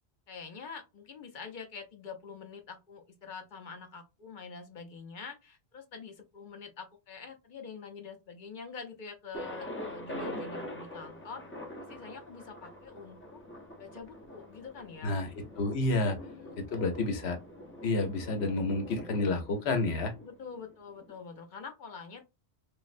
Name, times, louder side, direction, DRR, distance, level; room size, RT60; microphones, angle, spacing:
voice 1, 0.3-11.4 11.8-13.4 13.8-15.2 16.0-16.9 20.2-22.2, left 5 dB, 55° left, 0.7 m, -46 dB
Thunder, 9.3-21.1, equal, 15° left, 0.5 m, -44 dB
voice 2, 15.6-16.2 16.6-17.4 17.8-20.1, left 2 dB, 70° left, 1.0 m, -29 dB
3.0 x 2.4 x 2.5 m
omnidirectional pair, 1.1 m